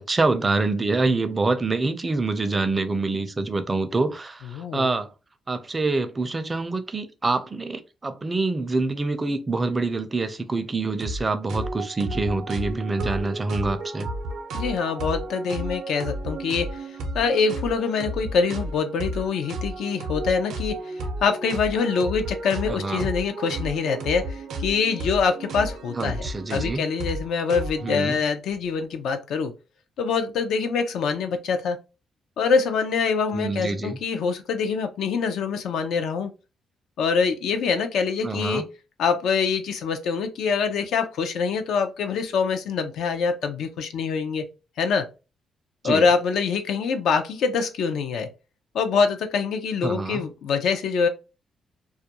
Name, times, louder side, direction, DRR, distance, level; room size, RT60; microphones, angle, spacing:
voice 1, 0.0-5.1 5.5-14.1 22.7-23.1 26.0-26.8 27.8-28.2 33.3-34.0 38.2-38.6 45.8-46.0 49.8-50.3, right 3 dB, 25° right, 0.4 m, -26 dB
voice 2, 4.5-4.9 14.5-29.5 30.0-31.8 32.4-36.3 37.0-38.7 39.0-44.5 44.8-45.1 45.8-48.3 48.7-51.1, left 5 dB, 80° left, 0.4 m, -25 dB
sound 1, 11.0-11.2 11.5-28.0, right 1 dB, 80° right, 0.5 m, -33 dB
2.3 x 2.1 x 2.8 m
cardioid pair, 90°, 0 cm